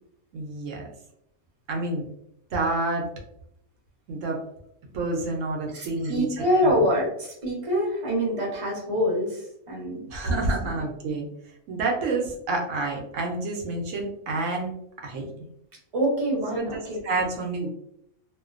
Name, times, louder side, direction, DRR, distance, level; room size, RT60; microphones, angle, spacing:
voice 1, 0.3-0.9 1.7-2.1 2.5-3.1 4.1-4.4 4.9-6.3 6.6-6.7 10.1-11.3 11.7-14.7 15.0-15.5 16.5-17.7, right 2 dB, 70° right, 0 dB, 0.9 m, -28 dB
voice 2, 5.7-10.8 15.9-17.0, equal, 30° right, -4 dB, 0.8 m, -26 dB
2.5 x 2.1 x 2.4 m, 0.75 s
omnidirectional pair, 1.5 m